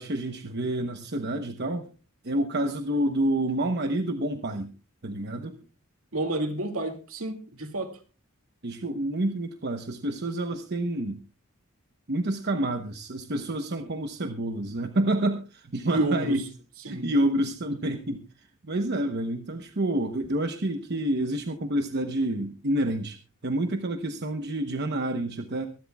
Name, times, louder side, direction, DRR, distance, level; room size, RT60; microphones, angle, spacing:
voice 1, 0.0-1.9 2.2-4.7 5.0-5.6 8.6-11.2 12.1-16.5 16.9-23.2 23.4-25.7, right 1 dB, 50° right, 1.0 m, -28 dB
voice 2, 6.1-8.0 15.9-16.4 16.8-17.1, right 2 dB, 70° right, 2.3 m, -29 dB
24.0 x 12.0 x 2.3 m
head